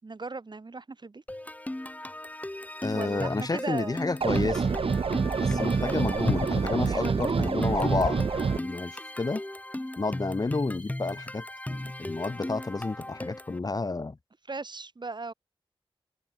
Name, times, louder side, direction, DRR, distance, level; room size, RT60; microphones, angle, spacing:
voice 1, 0.0-1.2 2.9-4.1 5.4-6.0 6.8-7.6 14.5-15.3, right 3 dB, 50° right, 6.9 m, -37 dB
sound 1, 1.3-13.6, left 1 dB, 15° left, 4.5 m, -38 dB
voice 2, 2.8-4.7 5.4-9.4 10.0-14.2, left 3 dB, 40° left, 2.0 m, -31 dB
sound 2, 4.2-8.6, right 5 dB, 75° right, 2.6 m, -27 dB
sound 3, 6.2-8.4, left 5 dB, 75° left, 1.1 m, -33 dB
wide cardioid pair, 70°, 10 cm